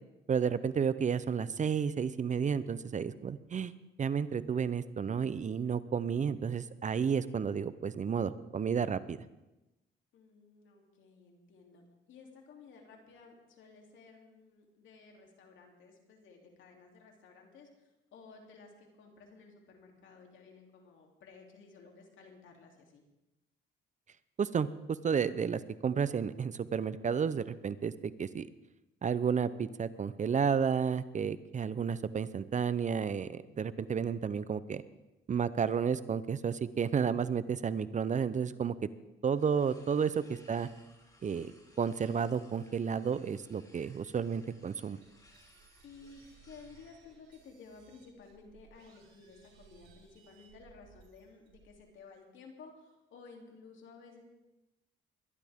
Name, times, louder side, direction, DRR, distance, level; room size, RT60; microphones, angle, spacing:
voice 1, 0.3-3.7 4.0-9.2 24.4-28.5 29.0-34.8 35.3-38.8 39.2-40.7 41.2-41.5 41.8-45.0, right 6 dB, 40° right, 15 dB, 0.6 m, -32 dB
voice 2, 10.1-23.0 39.7-40.3 45.8-54.2, left 4 dB, 75° left, 1 dB, 3.1 m, -55 dB
sound 1, 39.3-47.0, left 1 dB, 20° left, 2.9 m, -63 dB
sound 2, 45.0-51.8, right 5 dB, 80° right, 4.0 m, -62 dB
22.0 x 11.5 x 3.6 m, 0.98 s
cardioid pair, 90°, 20 cm